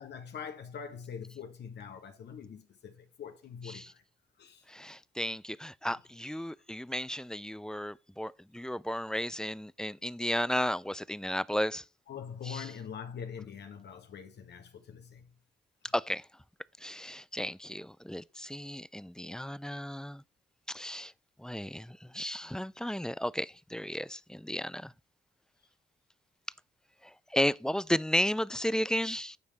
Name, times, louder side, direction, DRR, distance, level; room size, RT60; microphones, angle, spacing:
voice 1, 0.0-4.0 4.4-4.6 12.1-15.3 15.8-15.9, left 7 dB, 70° left, 1.3 m, -43 dB
voice 2, 4.7-11.8 12.4-12.7 15.9-16.2 16.8-20.2 20.7-21.1 21.4-24.9 27.3-29.4, equal, 5° left, 0.5 m, -33 dB
9.6 x 3.4 x 6.3 m
supercardioid pair, 45°, 18 cm